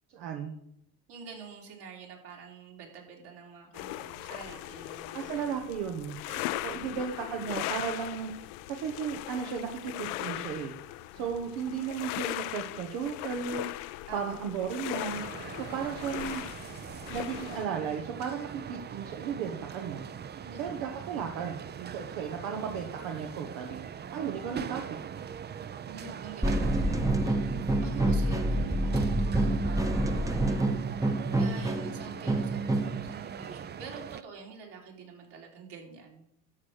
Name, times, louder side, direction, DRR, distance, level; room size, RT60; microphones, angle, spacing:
voice 1, 0.1-0.5 5.1-6.2 6.6-8.3 8.7-10.7 11.1-13.7 14.1-15.2 15.6-16.4 17.1-20.0 20.6-23.8 24.1-25.0 28.6-28.8, right 7 dB, 80° right, 3 dB, 1.3 m, -35 dB
voice 2, 1.1-5.6 6.3-6.9 11.1-11.2 14.1-14.4 20.4-20.8 25.8-27.5 27.8-36.2, right 5 dB, 60° right, 0 dB, 3.3 m, -47 dB
sound 1, 3.7-17.6, left 16 dB, 85° left, 0.6 m, -39 dB
sound 2, 15.1-34.2, right 8 dB, 25° right, 0.4 m, -41 dB
sound 3, 26.4-33.1, right 2 dB, 5° right, 0.8 m, -27 dB
12.0 x 4.7 x 6.5 m, 0.75 s
supercardioid pair, 80°, 46 cm